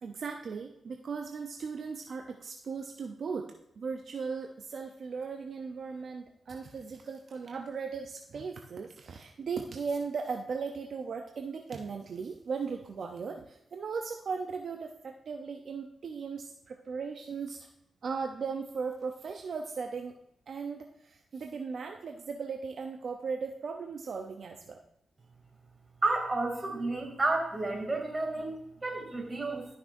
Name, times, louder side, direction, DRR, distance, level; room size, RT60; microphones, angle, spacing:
voice 1, 0.0-17.7 18.0-20.1 20.5-24.8, right 5 dB, 70° right, 3 dB, 0.6 m, -37 dB
voice 2, 26.0-29.7, right 2 dB, 35° right, 1 dB, 2.8 m, -31 dB
13.5 x 6.0 x 2.6 m, 0.79 s
cardioid pair, 50°, 0 cm